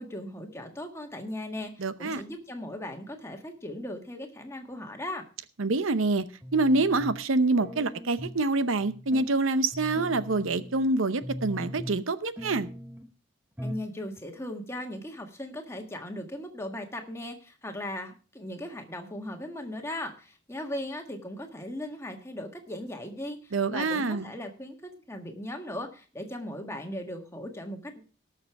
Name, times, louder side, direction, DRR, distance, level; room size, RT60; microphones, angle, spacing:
voice 1, 0.0-5.2 13.6-28.0, left 1 dB, 15° left, 1.6 m, -38 dB
voice 2, 1.8-2.2 5.6-6.2 6.5-12.7 23.5-24.3, right 3 dB, 85° right, 0.8 m, -26 dB
sound 1, 6.4-7.3 7.6-8.4 8.8-9.3 9.7-10.9 11.2-12.1 12.4-13.1 13.6-13.9 14.2-14.3, equal, 10° right, 0.9 m, -40 dB
18.0 x 6.7 x 4.7 m
head